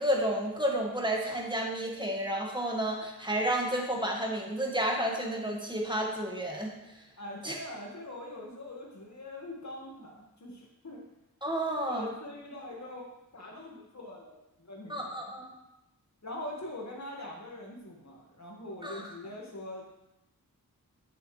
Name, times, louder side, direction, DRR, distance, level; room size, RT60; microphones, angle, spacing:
voice 1, 0.0-6.7 7.4-7.6 11.4-12.1 14.9-15.5 18.8-19.1, right 1 dB, 15° right, 0 dB, 1.7 m, -31 dB
voice 2, 7.2-11.0 11.9-13.0 13.3-15.3 16.2-19.8, left 1 dB, 50° left, -2 dB, 1.8 m, -43 dB
8.1 x 6.9 x 3.3 m, 0.90 s
wide cardioid pair, 40°, 36 cm